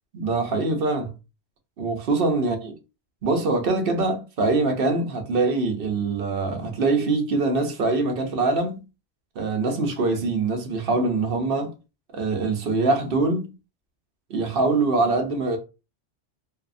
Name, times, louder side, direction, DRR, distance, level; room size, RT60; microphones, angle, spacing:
voice 1, 0.1-1.1 1.8-2.7 3.2-8.8 9.4-11.7 12.1-13.5 14.3-15.6, right 3 dB, 60° right, 0.8 m, -23 dB
2.7 x 2.4 x 2.4 m
omnidirectional pair, 1.2 m